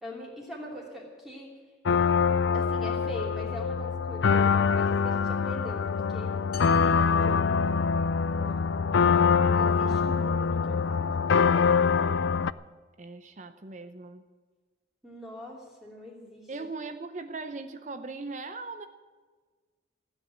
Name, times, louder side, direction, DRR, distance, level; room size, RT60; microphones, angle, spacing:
voice 1, 0.0-1.5 2.5-6.4 7.2-7.6 8.3-8.7 9.4-11.1 15.0-16.5, left 1 dB, ahead, -4 dB, 3.0 m, -42 dB
sound 1, 1.8-12.5, left 5 dB, 70° left, 0.4 m, -24 dB
sound 2, 6.5-8.3, left 7 dB, 50° left, 2.2 m, -48 dB
voice 2, 13.0-14.2 16.5-18.9, right 3 dB, 40° right, 9 dB, 0.7 m, -39 dB
16.0 x 8.8 x 9.6 m, 1.4 s
head